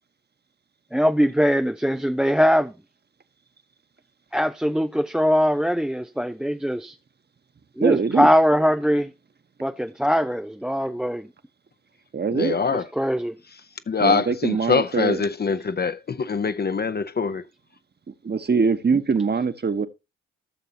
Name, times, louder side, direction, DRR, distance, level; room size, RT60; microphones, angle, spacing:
voice 1, 0.9-2.7 4.3-7.0 7.8-9.1 9.6-11.3 12.7-13.4, equal, ahead, 0.4 m, -21 dB
voice 2, 7.8-8.3 12.1-12.6 14.0-15.2 18.1-19.9, right 5 dB, 30° right, 1.2 m, -23 dB
voice 3, 12.3-12.8 13.9-17.4, left 5 dB, 30° left, 0.7 m, -24 dB
15.0 x 6.7 x 2.8 m
hypercardioid pair, 45°, 34 cm